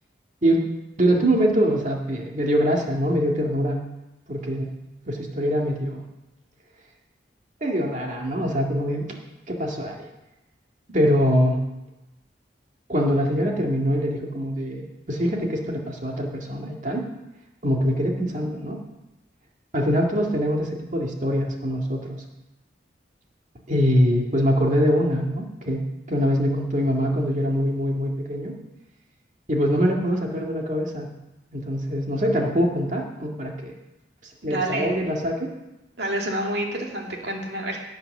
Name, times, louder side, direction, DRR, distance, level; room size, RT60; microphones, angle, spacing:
voice 1, 1.0-3.8 4.3-4.7 5.1-6.0 7.6-9.2 9.5-10.0 10.9-11.6 12.9-17.1 17.6-18.8 19.7-22.2 23.7-28.5 29.5-31.1 31.5-33.7 34.4-35.5, equal, 40° right, 0 dB, 2.1 m, -23 dB
voice 2, 34.4-34.9 36.0-37.8, right 1 dB, 65° right, 0 dB, 2.4 m, -28 dB
17.0 x 6.1 x 6.7 m, 0.99 s
head